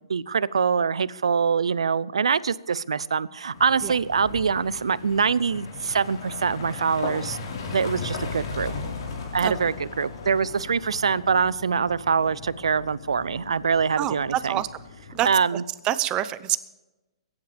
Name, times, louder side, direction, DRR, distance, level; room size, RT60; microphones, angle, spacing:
voice 1, 0.1-7.4 7.7-8.7 9.3-14.6 15.2-15.6, right 6 dB, 85° right, 20 dB, 0.6 m, -24 dB
sound 1, 3.5-15.3, left 4 dB, 60° left, 4.5 m, -37 dB
voice 2, 14.0-14.7 15.1-15.3 15.9-16.6, right 13 dB, 25° right, 15 dB, 0.7 m, -26 dB
22.0 x 10.5 x 3.4 m, 1.0 s
hypercardioid pair, 140°, 3 cm